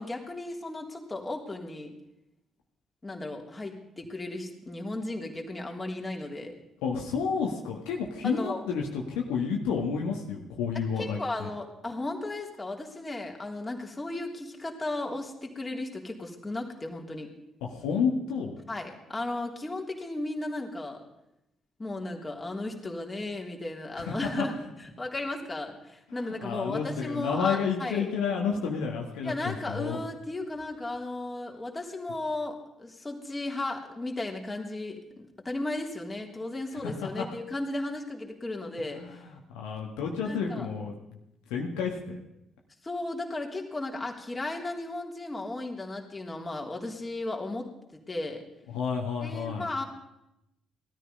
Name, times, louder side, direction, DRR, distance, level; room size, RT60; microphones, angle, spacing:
voice 1, 0.0-1.9 3.0-6.5 8.2-8.6 11.0-17.3 18.7-21.0 21.8-28.1 29.2-35.0 35.4-39.3 40.2-40.7 42.8-48.4 49.2-49.8, left 2 dB, 20° left, 1 dB, 3.3 m, -35 dB
voice 2, 6.8-11.5 17.6-18.6 24.0-24.4 26.4-30.0 36.8-37.2 39.0-39.1 39.5-41.0 41.5-42.2 48.7-49.7, left 6 dB, 70° left, 0 dB, 1.7 m, -30 dB
18.5 x 13.0 x 5.5 m, 0.87 s
figure-of-eight pair, 45°, 0 cm